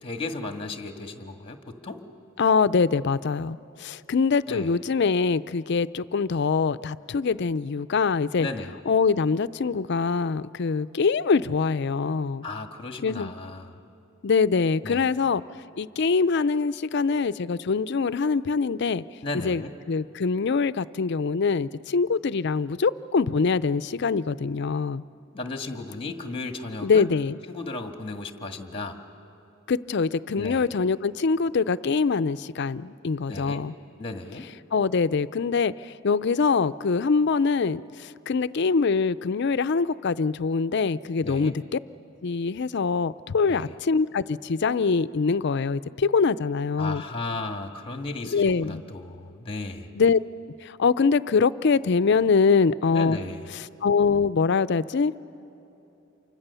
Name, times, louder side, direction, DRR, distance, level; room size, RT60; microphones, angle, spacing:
voice 1, 0.0-2.0 4.5-4.7 8.4-8.7 12.4-13.8 14.8-15.1 19.2-19.7 25.3-27.1 27.5-29.0 30.4-30.6 33.3-33.6 34.0-34.5 41.2-41.6 43.4-43.7 46.8-49.9 52.9-53.5, left 2 dB, 25° left, 5 dB, 1.6 m, -35 dB
voice 2, 2.4-8.5 8.9-12.5 13.0-13.3 14.2-15.4 15.8-19.0 19.3-25.0 26.8-27.4 29.7-33.8 34.7-41.8 42.2-47.0 48.2-48.8 49.9-50.2 50.6-53.2 53.5-55.1, left 5 dB, 60° left, 16 dB, 0.5 m, -24 dB
28.5 x 25.0 x 6.9 m, 3.0 s
head